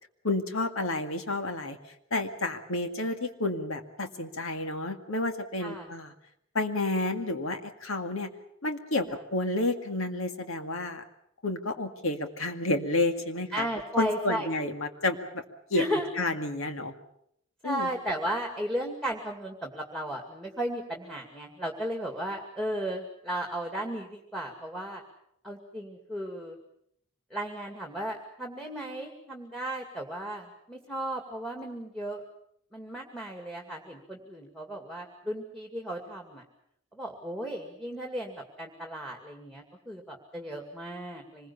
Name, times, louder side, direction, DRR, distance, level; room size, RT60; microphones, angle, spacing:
voice 1, 0.2-1.8 2.1-6.1 6.5-8.3 8.6-9.1 9.3-11.0 11.4-13.7 14.0-15.4 15.7-15.8 16.2-16.9 17.6-17.9, left 2 dB, 75° left, 6 dB, 2.0 m, -30 dB
voice 2, 13.5-14.5 15.7-16.1 17.6-25.0 25.4-26.6 27.3-32.2 32.7-36.4 36.9-41.5, right 1 dB, 5° left, 3 dB, 2.3 m, -35 dB
25.5 x 21.5 x 7.0 m, 0.72 s
head